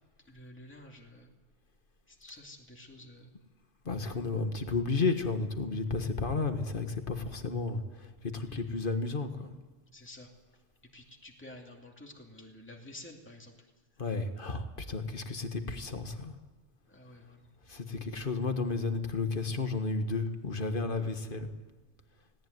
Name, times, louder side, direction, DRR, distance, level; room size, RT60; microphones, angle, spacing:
voice 1, 0.2-1.3 2.1-3.3 8.4-8.6 9.9-10.3 10.9-13.7 16.9-17.5, left 1 dB, 10° left, 1 dB, 2.5 m, -50 dB
voice 2, 3.8-8.1 8.3-9.5 14.0-16.3 17.7-21.5, left 3 dB, 45° left, 7 dB, 1.7 m, -32 dB
18.5 x 18.0 x 9.5 m, 1.2 s
omnidirectional pair, 1.3 m